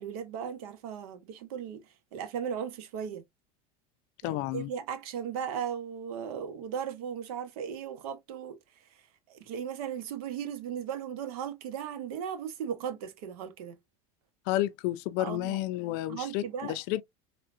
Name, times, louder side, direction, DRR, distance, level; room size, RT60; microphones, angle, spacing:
voice 1, 0.0-1.8 2.1-3.2 4.2-8.6 9.3-13.7 15.2-15.6 16.1-16.7, right 8 dB, 75° right, 1.0 m, -37 dB
voice 2, 4.2-4.7 14.5-17.0, left 15 dB, 60° left, 0.4 m, -31 dB
3.6 x 2.3 x 2.4 m
supercardioid pair, 100°, 19 cm